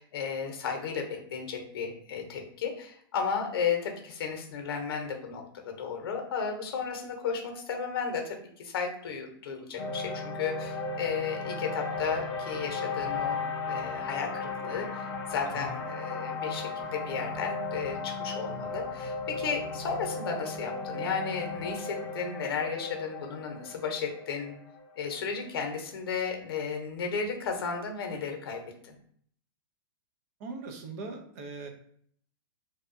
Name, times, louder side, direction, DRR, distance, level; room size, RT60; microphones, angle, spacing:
voice 1, 0.0-24.5 25.0-28.9, left 6 dB, 70° left, 3 dB, 0.8 m, -34 dB
sound 1, 9.8-26.0, left 4 dB, 25° left, 0.7 m, -36 dB
voice 2, 15.4-15.8 30.4-31.7, right 3 dB, 40° right, 5 dB, 0.5 m, -40 dB
2.6 x 2.3 x 2.5 m, 0.62 s
hypercardioid pair, 150°, 13 cm